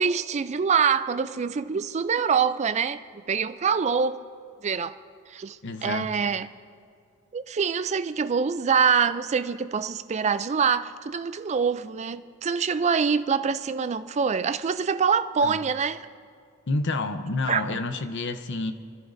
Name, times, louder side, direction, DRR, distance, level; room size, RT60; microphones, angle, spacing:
voice 1, 0.0-3.0 3.3-4.2 4.6-5.0 5.3-6.5 7.3-16.0 17.5-17.6, right 6 dB, 30° right, 0.3 m, -25 dB
voice 2, 5.6-6.2 15.4-15.6 16.7-18.7, left 3 dB, 55° left, 0.7 m, -29 dB
29.0 x 11.5 x 2.6 m
head